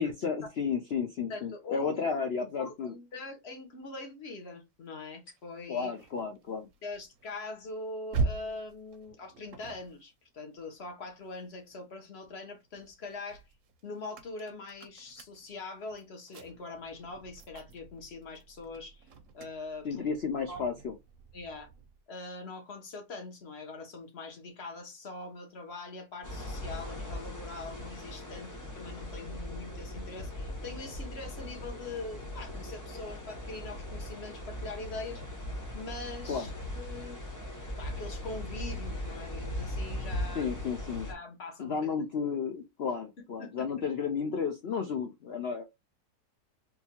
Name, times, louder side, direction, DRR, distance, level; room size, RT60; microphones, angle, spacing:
voice 1, 0.0-2.9 5.7-6.7 19.8-20.9 36.3-36.5 40.3-41.1 41.6-45.6, left 6 dB, 80° left, 0.5 m, -32 dB
voice 2, 1.3-2.0 2.4-5.9 6.8-13.4 13.8-19.1 19.3-20.1 20.5-20.6 21.3-21.7 22.1-35.2 35.7-37.2 37.8-40.5 41.1-41.9 43.2-43.7, left 3 dB, 45° left, 1.0 m, -43 dB
sound 1, 5.3-11.8 12.2-22.0, right 4 dB, 65° right, 0.8 m, -42 dB
sound 2, 26.2-41.1, left 1 dB, 20° left, 0.4 m, -39 dB
3.7 x 2.6 x 2.9 m
omnidirectional pair, 1.9 m